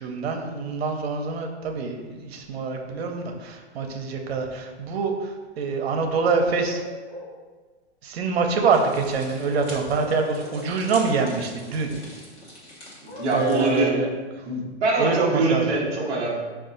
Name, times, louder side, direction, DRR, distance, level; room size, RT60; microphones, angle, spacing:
voice 1, 0.0-6.8 8.0-11.9 13.3-14.1 15.0-15.7, right 4 dB, 65° right, 3 dB, 0.6 m, -25 dB
sound 1, 6.1-7.4 9.6-10.8 13.1-13.8, left 5 dB, 65° left, 1.0 m, -37 dB
sound 2, 8.7-13.8, left 1 dB, 20° left, 0.8 m, -44 dB
voice 2, 13.0-13.9 14.5-16.4, right 2 dB, 15° right, -5 dB, 0.5 m, -23 dB
4.7 x 2.4 x 3.8 m, 1.3 s
hypercardioid pair, 155°, 34 cm